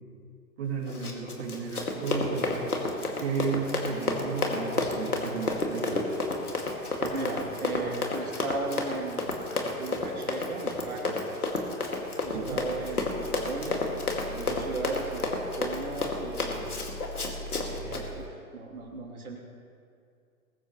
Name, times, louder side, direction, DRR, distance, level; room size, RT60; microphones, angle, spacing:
voice 1, 0.6-2.7 3.2-6.1 12.3-12.6, right 5 dB, 45° right, -3 dB, 2.8 m, -33 dB
Run, 0.9-18.0, left 3 dB, 80° left, 2.3 m, -31 dB
voice 2, 7.0-9.3 9.6-11.2 12.2-13.8 14.2-16.7 17.7-19.4, right 3 dB, 75° right, -3 dB, 3.2 m, -36 dB
sound 1, 12.2-18.2, equal, 55° left, 0.8 m, -43 dB
21.5 x 14.0 x 3.1 m, 2.4 s
figure-of-eight pair, 120°, 44 cm